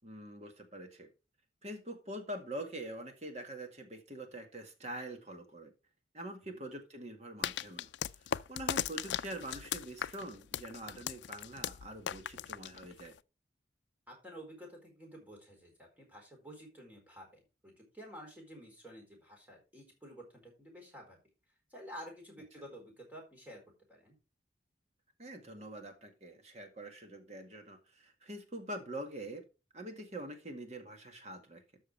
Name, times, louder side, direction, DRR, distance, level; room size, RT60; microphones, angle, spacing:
voice 1, 0.0-1.1 1.6-5.7 6.1-7.9 8.2-13.1 25.2-29.4 29.7-31.6, right 1 dB, 40° right, 5 dB, 1.8 m, -45 dB
sound 1, 7.4-13.2, left 9 dB, 85° left, 0.4 m, -38 dB
voice 2, 14.1-21.2 21.7-23.6 23.9-24.2, equal, 10° right, 0 dB, 4.2 m, -51 dB
12.5 x 6.3 x 3.4 m, 0.30 s
head